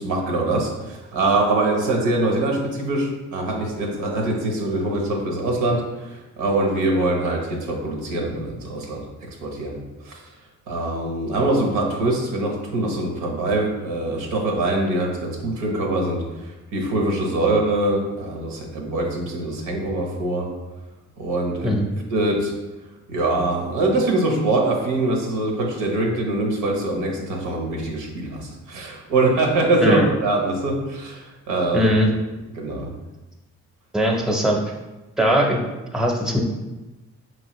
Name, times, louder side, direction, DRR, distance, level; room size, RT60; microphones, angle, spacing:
voice 1, 0.0-9.8 10.0-10.2 10.7-20.5 21.2-21.8 22.1-22.5 23.1-31.9 32.5-32.9, right 2 dB, 90° right, 1 dB, 1.0 m, -23 dB
voice 2, 31.7-32.1 33.9-34.6 35.2-35.6 35.9-36.4, equal, ahead, 1 dB, 0.7 m, -19 dB
5.2 x 3.1 x 3.0 m, 1.1 s
cardioid pair, 90°, 30 cm